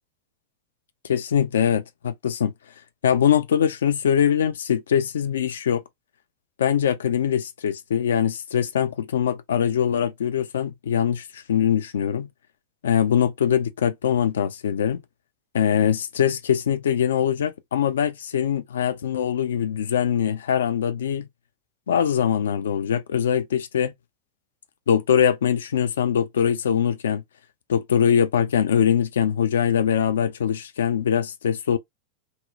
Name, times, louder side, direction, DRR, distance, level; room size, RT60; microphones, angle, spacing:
voice 1, 1.0-2.5 3.0-5.8 6.6-12.3 12.8-15.0 15.5-21.3 21.9-23.9 24.9-27.2 27.7-31.8, left 8 dB, 65° left, 0.3 m, -22 dB
2.8 x 2.0 x 2.3 m
figure-of-eight pair, 90°, 0 cm